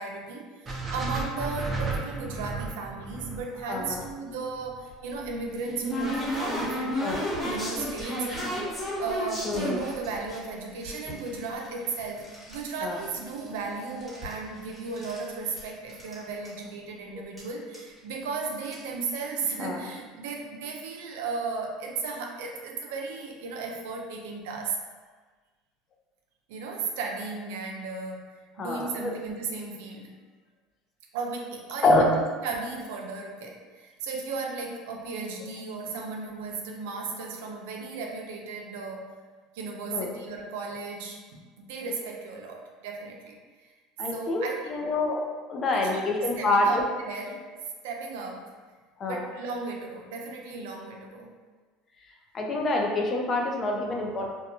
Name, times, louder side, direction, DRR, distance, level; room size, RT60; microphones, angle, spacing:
voice 1, 0.0-7.0 7.4-8.3 9.0-24.8 26.5-30.1 31.1-39.1 39.5-43.4 44.1-44.7 45.7-47.5 47.8-48.5 49.1-51.3, right 4 dB, 85° right, 1 dB, 0.4 m, -35 dB
sound 1, 0.7-4.8, right 3 dB, 20° right, 0.5 m, -34 dB
voice 2, 3.7-4.0 7.0-7.2 9.4-9.8 12.8-13.0 19.6-19.8 28.6-29.1 31.8-32.1 39.9-40.1 44.0-45.2 45.5-46.8 49.0-49.2 52.3-54.3, left 2 dB, 35° left, 0 dB, 0.4 m, -26 dB
sound 2, 4.9-10.4 10.8-12.6 12.9-13.6 13.9-15.2 15.6-15.7 15.9-16.1 16.4-16.5 17.4-17.5 17.7-18.0 18.5-18.8, equal, 5° left, 1.1 m, -33 dB
2.8 x 2.2 x 2.6 m, 1.4 s
supercardioid pair, 120°, 0 cm